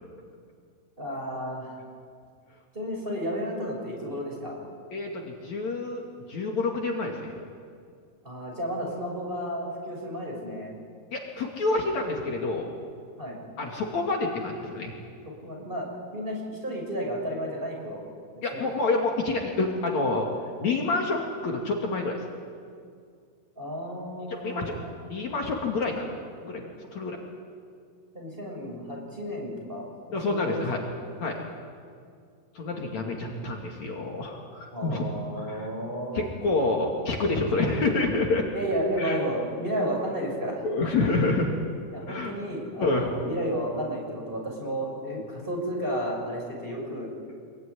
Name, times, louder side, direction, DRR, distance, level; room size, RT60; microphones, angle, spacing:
voice 1, 1.0-1.8 2.7-4.6 8.2-10.7 13.2-13.4 15.4-18.0 18.3-18.7 23.6-24.9 28.1-30.9 34.7-36.3 38.5-40.7 41.9-47.1, equal, 15° right, -1 dB, 6.6 m, -32 dB
voice 2, 4.9-6.0 6.3-7.2 11.1-12.7 13.6-14.9 18.4-20.3 20.6-22.2 24.4-24.8 25.1-26.1 26.4-26.6 26.9-27.2 30.1-30.8 31.2-31.4 32.5-35.1 35.3-35.7 36.1-38.5 39.0-39.2 40.6-41.5 42.0-42.3 42.8-43.1, left 3 dB, 55° left, 0 dB, 3.4 m, -27 dB
26.5 x 22.5 x 9.9 m, 2.2 s
omnidirectional pair, 3.9 m